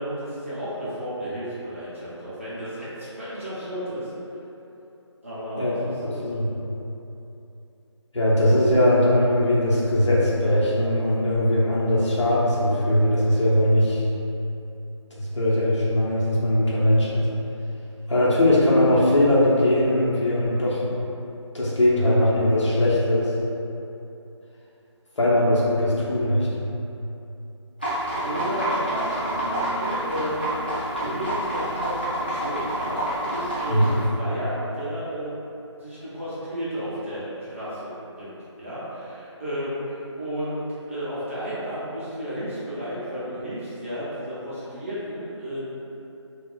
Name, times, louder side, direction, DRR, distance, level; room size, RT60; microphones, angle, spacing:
voice 1, 0.0-4.1 5.2-6.4 28.2-35.4 35.8-45.7, equal, 25° right, -11 dB, 0.7 m, -33 dB
voice 2, 8.1-14.0 15.2-17.3 18.1-21.0 21.5-23.3 25.2-26.7 33.7-33.9, left 1 dB, 70° left, -7 dB, 0.9 m, -20 dB
sound 1, 27.8-34.1, right 1 dB, 20° left, 0.4 m, -28 dB
3.9 x 2.4 x 2.3 m, 2.9 s
figure-of-eight pair, 175°, 16 cm